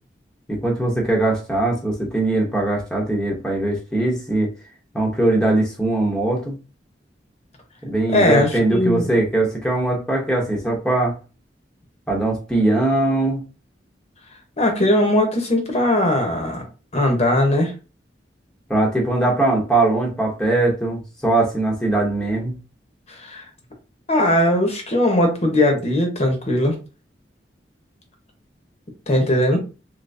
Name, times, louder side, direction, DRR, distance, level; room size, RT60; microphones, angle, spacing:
voice 1, 0.5-4.5 4.9-6.6 7.8-11.2 12.1-13.4 18.7-22.6, right 2 dB, 5° left, 0.8 m, -21 dB
voice 2, 8.1-9.1 14.6-16.6 16.9-17.7 23.1-23.4 24.1-26.7 29.1-29.6, left 1 dB, 40° left, 0.9 m, -19 dB
3.3 x 2.9 x 2.6 m
head